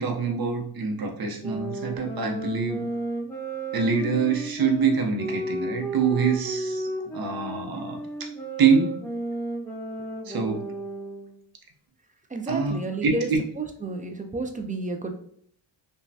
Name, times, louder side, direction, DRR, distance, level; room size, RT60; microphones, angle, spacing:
voice 1, 0.0-2.8 3.7-8.3 8.6-9.0 10.3-10.6 12.5-13.4, right 5 dB, 55° right, 3 dB, 0.8 m, -25 dB
sound 1, 1.4-11.4, right 2 dB, 5° left, 0.9 m, -33 dB
voice 2, 12.3-13.3 13.6-15.2, right 3 dB, 20° right, 5 dB, 0.4 m, -31 dB
2.9 x 2.3 x 2.6 m, 0.62 s
cardioid pair, 70°, 44 cm